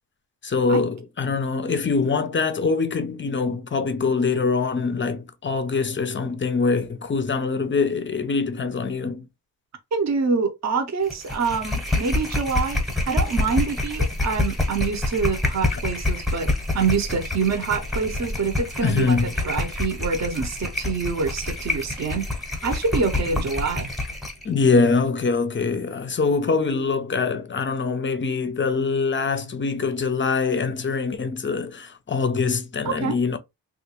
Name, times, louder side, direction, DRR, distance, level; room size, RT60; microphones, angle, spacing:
voice 1, 0.4-9.2 18.8-19.3 24.4-33.4, left 4 dB, 30° left, 0.5 m, -23 dB
voice 2, 9.9-22.3 22.6-23.9 32.8-33.2, right 5 dB, 45° right, 0.7 m, -26 dB
sound 1, 11.1-24.4, left 2 dB, ahead, 0.9 m, -27 dB
3.3 x 2.4 x 2.9 m
wide cardioid pair, 115°, 39 cm